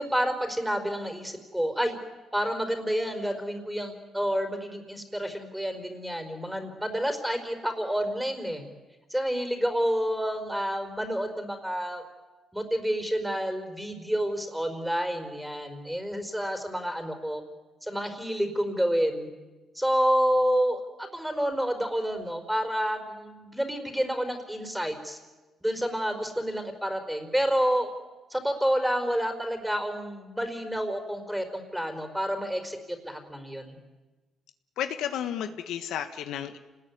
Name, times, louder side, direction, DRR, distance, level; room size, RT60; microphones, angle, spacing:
voice 1, 0.0-2.0 2.3-8.6 9.1-12.0 12.5-17.4 17.8-19.3 19.7-20.8 21.1-25.2 25.6-27.9 28.3-32.8 33.0-33.8, equal, 5° right, 7 dB, 4.5 m, -29 dB
voice 2, 34.8-36.6, left 10 dB, 85° left, 9 dB, 1.4 m, -32 dB
28.0 x 20.0 x 9.6 m, 1.2 s
cardioid pair, 90°, 0 cm